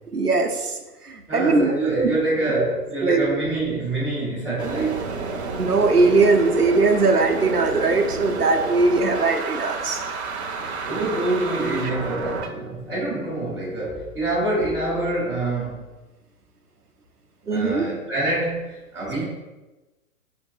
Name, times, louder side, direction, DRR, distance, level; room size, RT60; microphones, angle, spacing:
voice 1, 0.1-0.8 1.0-2.1 3.0-3.2 5.6-10.0 17.5-17.9, right 3 dB, 90° right, 3 dB, 0.8 m, -20 dB
voice 2, 1.3-5.1 10.8-15.8 17.4-19.2, right 2 dB, ahead, -21 dB, 0.4 m, -26 dB
sound 1, 4.6-12.5, right 4 dB, 50° right, 0.7 m, -30 dB
5.9 x 2.9 x 2.7 m, 1.1 s
figure-of-eight pair, 120°, 45 cm